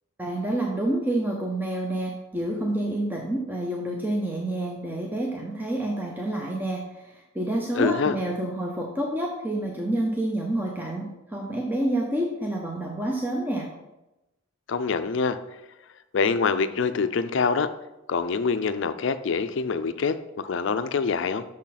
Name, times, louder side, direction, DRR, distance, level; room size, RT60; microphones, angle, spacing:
voice 1, 0.2-13.7, right 1 dB, 10° right, -1 dB, 0.6 m, -28 dB
voice 2, 7.7-8.1 14.7-15.4 16.1-17.7 18.1-21.4, left 5 dB, 60° left, 12 dB, 0.4 m, -25 dB
6.4 x 6.1 x 4.1 m, 0.97 s
head